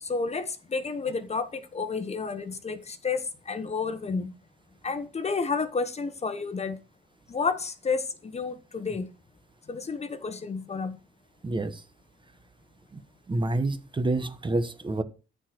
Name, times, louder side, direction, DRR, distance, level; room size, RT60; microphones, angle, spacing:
voice 1, 0.0-4.3 4.8-6.8 7.3-9.1 9.7-11.0, left 4 dB, 35° left, 1.2 m, -31 dB
voice 2, 11.4-11.8 12.9-13.0 13.3-15.0, right 2 dB, 25° right, 1.2 m, -28 dB
14.0 x 4.7 x 4.5 m
cardioid pair, 90°, 20 cm